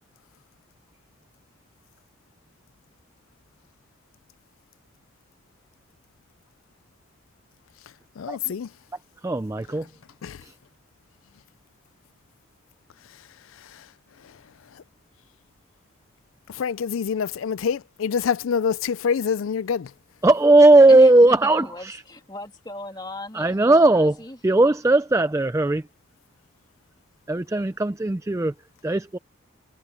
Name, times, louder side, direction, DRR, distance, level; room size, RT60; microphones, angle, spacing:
voice 1, 8.2-8.7 10.2-10.4 13.7-13.8 16.5-19.9, left 6 dB, 85° left, 0.4 m, -26 dB
voice 2, 9.2-9.8 20.2-21.6 23.3-24.1 24.4-25.8 27.3-28.5 28.8-29.2, right 2 dB, 15° right, 0.4 m, -17 dB
voice 3, 20.9-24.4, left 1 dB, 20° left, 2.5 m, -38 dB
head